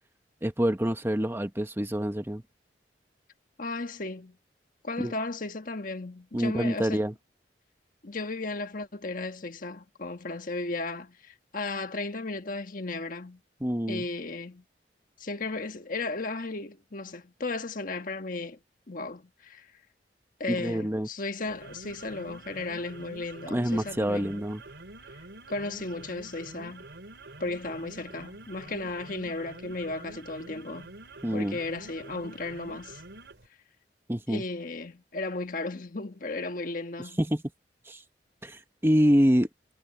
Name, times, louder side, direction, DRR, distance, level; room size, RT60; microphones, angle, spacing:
voice 1, 0.4-2.4 5.0-5.1 6.3-7.1 13.6-14.0 20.5-21.1 23.5-24.6 31.2-31.6 34.1-34.4 37.2-37.4 37.9-38.0 38.4-39.5, equal, 15° right, 1.1 m, -26 dB
voice 2, 3.6-4.4 4.8-7.1 8.0-13.4 13.9-14.6 15.2-18.6 18.9-19.7 20.4-24.4 25.5-26.9 27.4-30.9 31.3-33.0 34.3-37.2, left 3 dB, 50° left, 1.4 m, -35 dB
sound 1, 21.5-33.5, right 2 dB, 75° right, 3.3 m, -47 dB
head